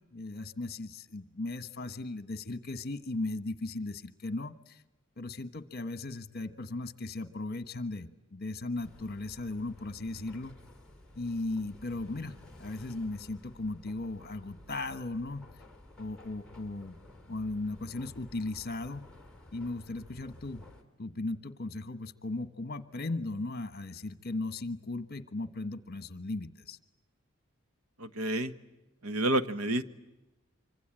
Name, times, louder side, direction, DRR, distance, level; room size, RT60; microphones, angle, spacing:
voice 1, 0.1-4.8 5.2-10.5 11.2-15.5 16.0-17.0 17.3-19.1 19.5-20.6 21.0-26.8, left 2 dB, 45° left, 13 dB, 1.3 m, -37 dB
sound 1, 8.7-20.8, left 1 dB, 5° left, 3.2 m, -53 dB
voice 2, 28.0-28.5 29.0-29.8, right 1 dB, 90° right, 12 dB, 1.5 m, -29 dB
25.5 x 25.0 x 9.0 m, 1.0 s
head